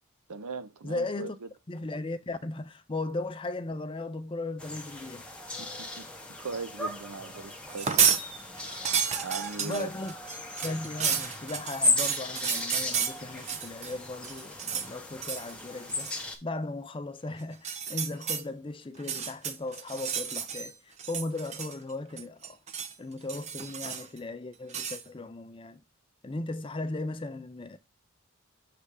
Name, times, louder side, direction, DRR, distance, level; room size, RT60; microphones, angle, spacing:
voice 1, 0.3-1.5 5.6-6.1 6.4-8.2 8.5-8.6 9.2-9.9, right 4 dB, 85° right, 0.8 m, -39 dB
voice 2, 0.8-1.4 1.7-5.2 9.6-10.1 10.6-16.1 16.4-22.6 23.0-25.8 26.2-27.8, left 2 dB, 20° left, 0.4 m, -37 dB
sound 1, 4.6-16.4, left 3 dB, 5° left, 0.8 m, -36 dB
sound 2, 7.7-8.2 8.6-13.9 14.2-14.9 15.2-15.5 15.9-16.2 17.5-18.4 19.0-20.7 21.0-21.9 22.2-22.9 23.3-24.2 24.7-25.0, right 7 dB, 30° right, 0.5 m, -31 dB
6.8 x 3.3 x 4.8 m
head